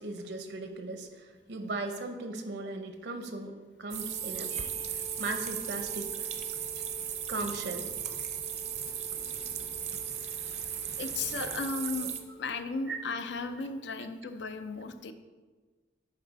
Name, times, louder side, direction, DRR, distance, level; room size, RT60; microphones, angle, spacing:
voice 1, 0.0-6.3 7.3-7.9 9.1-9.3 9.9-10.0 11.4-11.5 12.0-12.1 12.9-13.0, right 2 dB, 75° right, 7 dB, 0.7 m, -38 dB
Wind instrument woodwind instrument, 3.9-13.9, right 1 dB, 30° left, 0.5 m, -50 dB
sound 1, 3.9-12.2, right 9 dB, 40° right, 0.5 m, -36 dB
sound 2, 4.5-11.6, left 1 dB, 60° left, 1.0 m, -54 dB
voice 2, 11.0-15.1, left 4 dB, 80° left, 9 dB, 0.5 m, -35 dB
10.5 x 4.1 x 4.0 m, 1.3 s
head